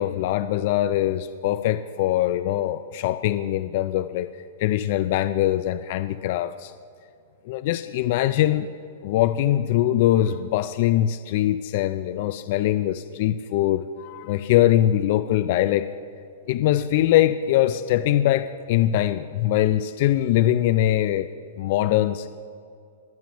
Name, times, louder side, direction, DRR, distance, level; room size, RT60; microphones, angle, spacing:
voice 1, 0.0-4.3 4.6-6.7 7.5-8.7 9.0-15.9 16.5-21.3 21.6-22.3, left 13 dB, 50° left, 12 dB, 0.3 m, -22 dB
21.0 x 9.1 x 3.0 m, 2.4 s
hypercardioid pair, 150°, 0 cm